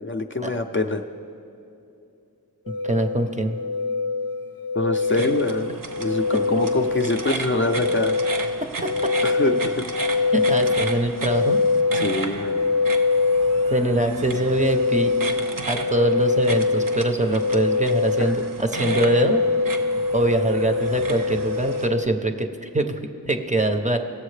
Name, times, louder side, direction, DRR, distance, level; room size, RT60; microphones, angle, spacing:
voice 1, 0.0-1.1 4.7-8.2 9.2-9.9 11.9-12.7 18.2-18.3, left 2 dB, 35° left, 4 dB, 0.4 m, -25 dB
sound 1, 2.7-22.1, left 4 dB, 80° left, 0.5 m, -24 dB
voice 2, 2.8-3.6 8.8-8.9 10.3-11.6 13.7-15.1 15.7-19.4 20.1-24.0, right 1 dB, 20° right, 5 dB, 0.5 m, -23 dB
sound 2, 5.0-21.9, right 3 dB, 65° right, 0.8 m, -35 dB
17.0 x 7.1 x 3.2 m, 2.7 s
wide cardioid pair, 65°, 35 cm